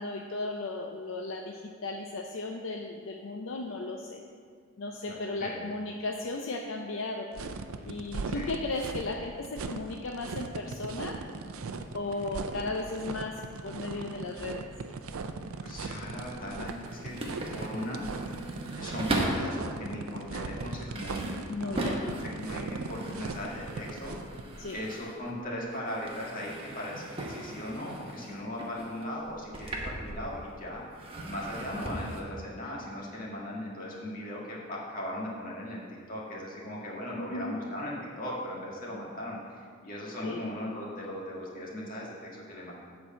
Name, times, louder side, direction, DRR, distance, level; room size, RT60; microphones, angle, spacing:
voice 1, 0.0-4.2 4.8-7.3 7.8-11.2 11.9-14.7 21.5-22.2 24.6-24.8 37.2-37.6 40.2-40.4, left 2 dB, 65° left, 2 dB, 0.5 m, -35 dB
voice 2, 5.1-5.7 8.3-8.5 15.6-17.1 17.5-18.1 18.7-22.0 22.4-24.2 24.7-42.7, left 1 dB, 40° left, -4 dB, 1.9 m, -38 dB
sound 1, 7.3-24.4, right 4 dB, 85° right, 0.5 m, -38 dB
sound 2, 15.7-19.6 20.2-25.4 25.7-30.6 30.9-32.2, right 1 dB, 25° right, 1.0 m, -38 dB
8.1 x 4.7 x 7.4 m, 2.1 s
head